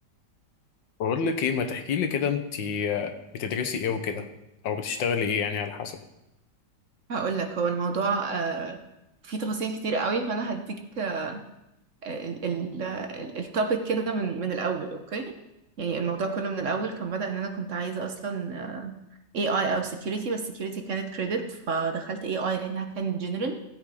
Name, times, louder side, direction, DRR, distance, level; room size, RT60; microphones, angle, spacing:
voice 1, 1.0-4.2 4.6-6.0, left 6 dB, 85° left, 7 dB, 1.8 m, -28 dB
voice 2, 7.1-8.8 9.2-11.4 12.0-15.4 15.8-18.9 19.3-23.6, right 4 dB, 50° right, 5 dB, 1.1 m, -29 dB
16.0 x 7.8 x 4.9 m, 0.91 s
omnidirectional pair, 2.0 m